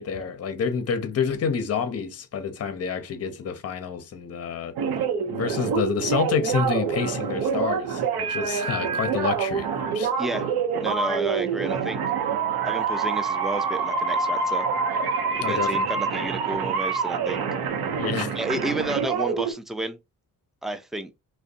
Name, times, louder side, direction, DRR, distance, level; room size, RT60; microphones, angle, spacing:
voice 1, 0.0-9.7 9.9-10.1 15.4-15.9 18.0-18.4, left 6 dB, 40° left, 0.6 m, -28 dB
sound 1, 4.8-19.5, right 5 dB, 80° right, 0.7 m, -26 dB
voice 2, 10.8-12.0 12.7-14.7 15.3-17.4 18.3-20.0 20.6-21.2, right 2 dB, ahead, 0.3 m, -31 dB
2.6 x 2.2 x 2.4 m
cardioid pair, 95°, 37 cm